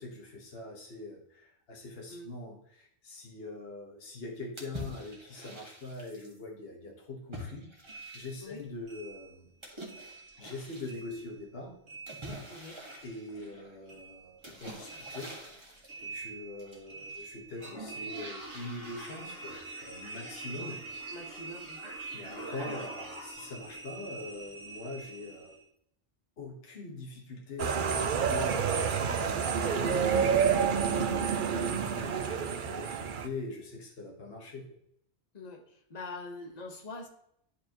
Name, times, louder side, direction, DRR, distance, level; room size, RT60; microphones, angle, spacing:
voice 1, 0.0-7.7 8.1-9.5 10.4-11.8 13.0-15.3 16.0-20.8 22.1-25.6 26.4-34.8, left 2 dB, 60° left, -1 dB, 1.6 m, -43 dB
sound 1, 4.6-6.4 7.3-8.6 9.6-11.0 12.1-13.8 14.4-16.0 16.6-17.2 17.5-23.5, right 1 dB, 25° right, 1.7 m, -45 dB
sound 2, 7.9-10.6 10.8-13.6 13.9-25.7, right 3 dB, 80° right, 1.8 m, -46 dB
voice 2, 21.1-21.8 22.2-22.5 30.5-30.7 31.1-31.3 35.3-37.1, left 2 dB, 40° left, 4 dB, 1.2 m, -44 dB
sound 3, 27.6-33.3, right 6 dB, 55° right, 0.7 m, -28 dB
11.0 x 4.6 x 3.0 m, 0.71 s
omnidirectional pair, 1.2 m